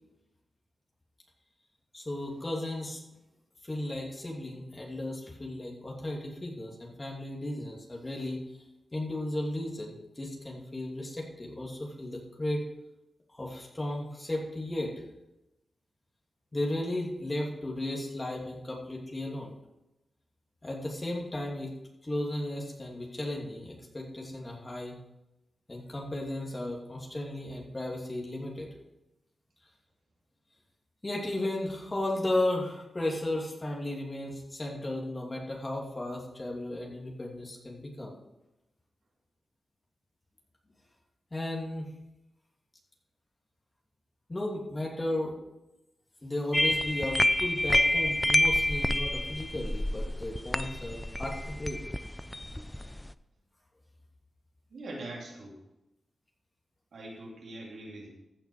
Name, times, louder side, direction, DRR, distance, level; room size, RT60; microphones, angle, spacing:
voice 1, 1.9-3.0 3.6-8.4 8.9-12.6 13.3-14.9 16.5-19.5 20.6-21.7 22.0-25.0 25.7-28.7 31.0-38.2 41.3-41.9 44.3-45.3 46.2-51.8, left 1 dB, 30° left, -2 dB, 2.7 m, -35 dB
sound 1, 46.5-53.1, left 1 dB, 10° left, 0.4 m, -28 dB
voice 2, 54.7-55.6 56.9-58.1, right 2 dB, 80° right, -2 dB, 2.7 m, -42 dB
15.0 x 6.1 x 4.9 m, 0.94 s
cardioid pair, 65°, 0 cm